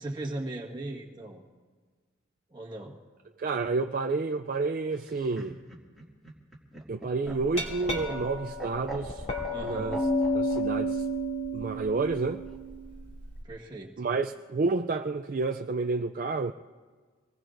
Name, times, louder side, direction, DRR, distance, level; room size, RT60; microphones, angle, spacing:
voice 1, 0.0-1.4 2.5-2.9 9.5-10.0 13.4-13.9, right 2 dB, 20° right, 1.5 m, -38 dB
voice 2, 3.4-5.6 6.9-9.2 9.6-10.0 10.3-11.0 11.5-12.4 14.0-16.5, right 3 dB, 40° right, 0.3 m, -30 dB
Laughter, 4.9-10.6 11.9-12.6, right 2 dB, ahead, 2.2 m, -42 dB
Glass, 7.3-13.4, equal, 35° left, 2.4 m, -31 dB
25.5 x 20.0 x 2.6 m
head